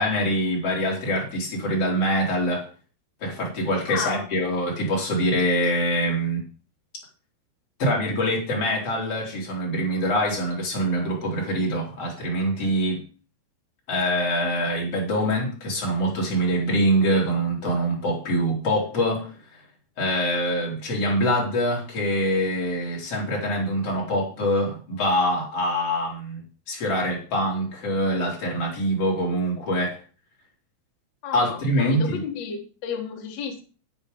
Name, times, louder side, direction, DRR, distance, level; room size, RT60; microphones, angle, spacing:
voice 1, 0.0-2.6 3.2-6.4 7.8-13.0 13.9-19.3 20.0-30.0 31.3-32.2, equal, 35° left, -2 dB, 3.7 m, -24 dB
voice 2, 3.9-4.3 31.2-33.6, left 7 dB, 55° left, 1 dB, 1.9 m, -32 dB
9.6 x 8.6 x 5.3 m, 0.38 s
omnidirectional pair, 5.8 m